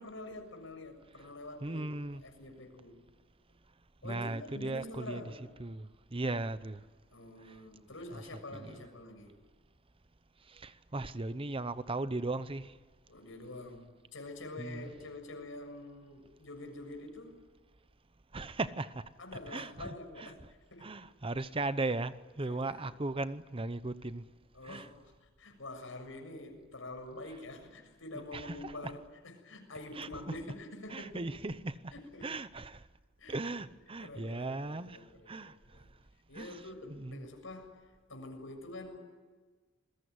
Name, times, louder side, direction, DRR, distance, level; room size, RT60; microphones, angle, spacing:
voice 1, 0.0-1.9 2.2-3.0 4.0-5.4 7.1-9.3 13.1-17.4 19.2-20.4 20.7-21.0 22.4-22.9 24.5-31.3 31.9-32.3 33.2-33.4 34.0-35.9 36.3-37.8 38.1-39.0, left 2 dB, 75° left, 7.0 m, -46 dB
voice 2, 1.6-2.2 4.0-5.2 5.6-6.8 7.4-7.5 8.5-8.8 10.5-12.7 14.6-14.9 18.3-19.1 19.5-20.3 20.8-24.2 24.6-24.9 28.3-28.7 29.9-30.4 30.9-31.9 32.2-32.8 33.3-35.6 36.3-36.6 36.9-37.3, right 2 dB, 25° right, 0.8 m, -37 dB
28.0 x 22.0 x 9.6 m
head